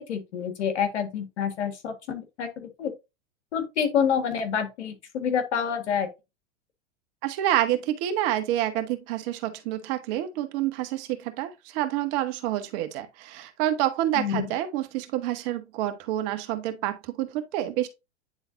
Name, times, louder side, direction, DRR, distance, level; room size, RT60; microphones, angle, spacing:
voice 1, 0.0-2.9 3.5-6.1 14.2-14.5, left 7 dB, 80° left, 1.9 m, -28 dB
voice 2, 7.2-17.9, right 13 dB, 50° right, 1.5 m, -28 dB
9.6 x 3.9 x 2.7 m
hypercardioid pair, 110°, 34 cm